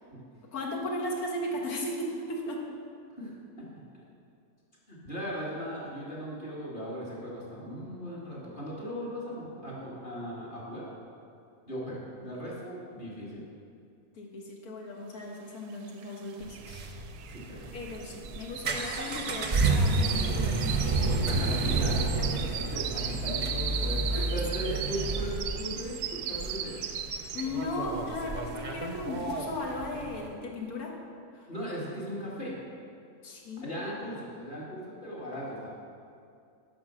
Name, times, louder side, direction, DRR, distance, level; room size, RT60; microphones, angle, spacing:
voice 1, 0.5-2.6 14.2-16.8 17.7-21.0 21.3-21.5 22.2-22.8 24.1-24.7 27.3-30.9 31.3-31.5 33.2-33.7, left 1 dB, 70° left, 0 dB, 1.8 m, -36 dB
voice 2, 3.1-3.7 3.9-4.0 4.9-10.9 11.7-13.4 17.3-17.7 21.2-24.0 24.3-26.9 31.5-32.6 33.6-35.7, equal, 30° left, -6 dB, 2.3 m, -38 dB
sound 1, 16.0-16.1 16.3-27.8 28.2-28.5 28.9-29.0, right 9 dB, 85° right, 1.1 m, -37 dB
sound 2, 16.4-30.3, right 3 dB, 40° right, 0.7 m, -31 dB
10.0 x 5.7 x 6.2 m, 2.4 s
omnidirectional pair, 1.7 m